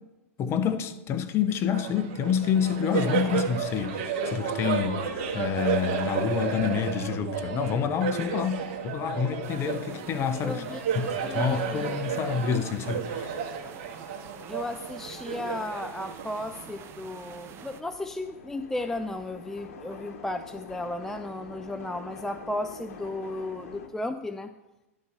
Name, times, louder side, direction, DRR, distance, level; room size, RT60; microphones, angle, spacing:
voice 1, 0.4-13.3, left 7 dB, 35° left, 0.8 m, -28 dB
Laughter, 1.7-16.7, right 7 dB, 55° right, 1.5 m, -32 dB
sound 1, 7.4-23.9, left 5 dB, 70° left, 1.1 m, -49 dB
sound 2, 9.4-17.8, right 8 dB, 30° right, 0.7 m, -47 dB
voice 2, 10.4-10.8 11.2-12.0 14.5-24.5, left 1 dB, 5° left, 0.3 m, -34 dB
11.0 x 4.2 x 6.5 m
hypercardioid pair, 105°, 8 cm